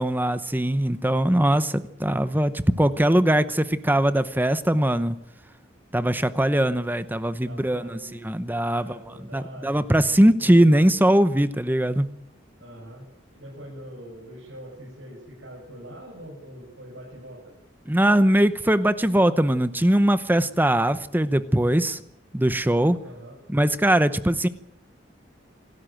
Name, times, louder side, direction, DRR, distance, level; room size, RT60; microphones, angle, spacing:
voice 1, 0.0-5.2 5.9-8.0 8.2-9.0 9.3-12.1 17.9-22.0 22.3-23.0 23.5-24.5, right 1 dB, 10° right, 13 dB, 0.8 m, -21 dB
voice 2, 7.5-8.2 8.7-9.8 10.2-10.7 12.6-13.1 13.3-17.6 23.0-23.4, right 1 dB, 75° right, -4 dB, 7.3 m, -43 dB
26.5 x 13.0 x 9.1 m, 0.83 s
head